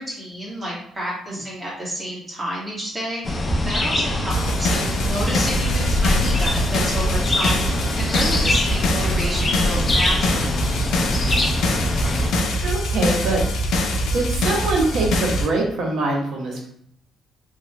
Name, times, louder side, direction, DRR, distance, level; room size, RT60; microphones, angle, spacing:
voice 1, 0.0-3.2 3.6-7.6 7.9-10.4, equal, 25° right, -5 dB, 1.5 m, -30 dB
sound 1, 3.2-12.3, left 1 dB, 25° left, 0.5 m, -23 dB
sound 2, 4.3-15.5, equal, 80° left, 0.4 m, -23 dB
voice 2, 12.6-13.4 14.1-16.7, right 2 dB, 70° right, -1 dB, 0.9 m, -23 dB
3.2 x 2.7 x 2.2 m, 0.68 s
cardioid pair, 90°, 0 cm